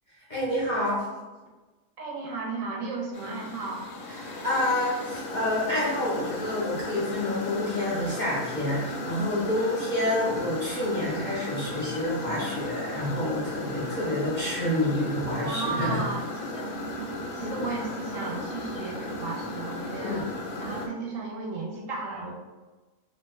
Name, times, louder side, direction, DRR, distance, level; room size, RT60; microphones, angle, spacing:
voice 1, 0.3-1.0 4.2-16.0 17.4-17.6 20.0-20.2, left 1 dB, 55° left, -7 dB, 0.5 m, -28 dB
voice 2, 2.0-3.9 15.2-16.7 17.3-20.3 20.6-22.3, right 3 dB, 65° right, -3 dB, 1.0 m, -34 dB
sound 1, 3.1-20.9, left 1 dB, 85° left, 1.2 m, -35 dB
2.8 x 2.2 x 3.2 m, 1.2 s
omnidirectional pair, 1.7 m